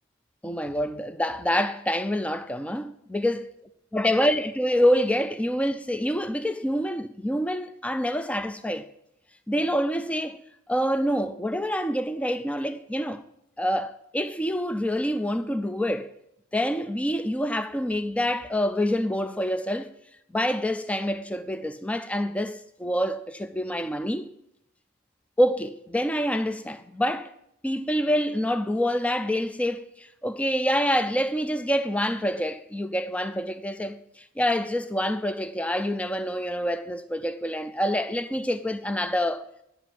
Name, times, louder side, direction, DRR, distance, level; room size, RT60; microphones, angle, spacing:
voice 1, 0.4-3.4 3.9-8.9 9.5-10.4 10.7-13.2 13.6-16.1 16.5-19.9 20.3-24.3 25.4-27.3 27.6-39.5, equal, 5° left, 0.4 m, -26 dB
9.0 x 8.9 x 7.7 m
head